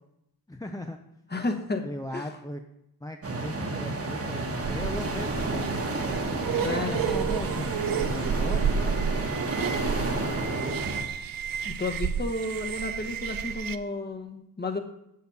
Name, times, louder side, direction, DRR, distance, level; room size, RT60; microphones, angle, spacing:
voice 1, 0.5-1.0 1.8-2.6 3.0-5.7 6.5-9.0 10.1-10.6, left 1 dB, 10° left, 4 dB, 0.5 m, -38 dB
voice 2, 1.3-1.8 2.1-2.3 6.6-7.3 11.6-14.8, left 2 dB, 25° left, 5 dB, 1.1 m, -32 dB
sound 1, 3.2-11.0, right 2 dB, 40° right, 1.3 m, -31 dB
sound 2, 4.6-13.8, right 7 dB, 65° right, 0.6 m, -31 dB
8.2 x 6.7 x 7.0 m, 0.81 s
wide cardioid pair, 155°, 38 cm